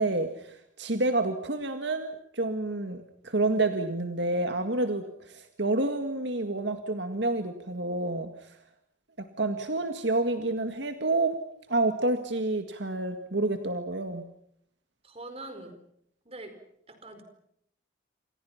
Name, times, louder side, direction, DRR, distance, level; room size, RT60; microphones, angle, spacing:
voice 1, 0.0-8.6 9.2-11.4 11.7-14.2, right 2 dB, 65° right, 7 dB, 1.9 m, -29 dB
voice 2, 15.0-15.7 16.2-16.5 16.9-17.2, right 2 dB, 30° right, 8 dB, 4.7 m, -43 dB
28.5 x 27.5 x 5.8 m, 0.73 s
head